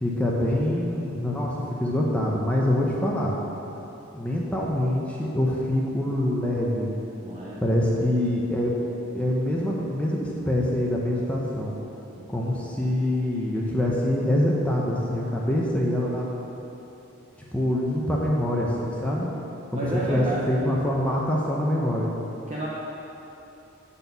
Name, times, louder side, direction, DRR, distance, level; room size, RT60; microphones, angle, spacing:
voice 1, 0.0-1.5 1.8-3.3 4.1-6.9 7.6-8.7 9.1-11.7 12.3-16.3 17.5-19.3 19.7-22.1, left 1 dB, 5° left, -4 dB, 0.7 m, -25 dB
voice 2, 7.2-7.6 12.2-12.3 18.9-19.0 19.7-20.6 22.5-22.7, right 1 dB, 35° right, -6 dB, 0.8 m, -31 dB
8.8 x 4.2 x 6.8 m, 3.0 s
head